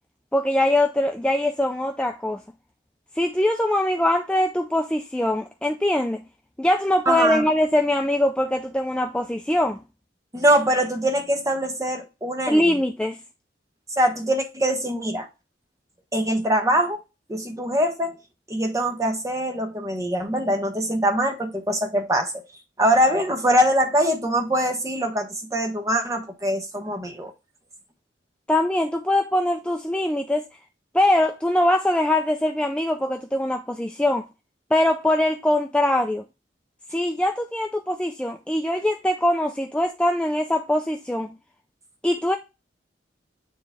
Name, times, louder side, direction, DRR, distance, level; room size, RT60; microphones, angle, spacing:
voice 1, 0.3-2.4 3.2-6.2 6.6-9.8 12.5-13.2 28.5-30.5 30.9-34.3 34.7-36.2 36.9-41.3 42.0-42.4, left 1 dB, 5° left, 0.4 m, -22 dB
voice 2, 7.1-7.4 10.3-12.8 14.0-15.3 16.1-17.0 17.3-18.2 18.5-22.3 22.8-27.3, equal, 20° right, 1.1 m, -23 dB
9.1 x 3.2 x 3.5 m
head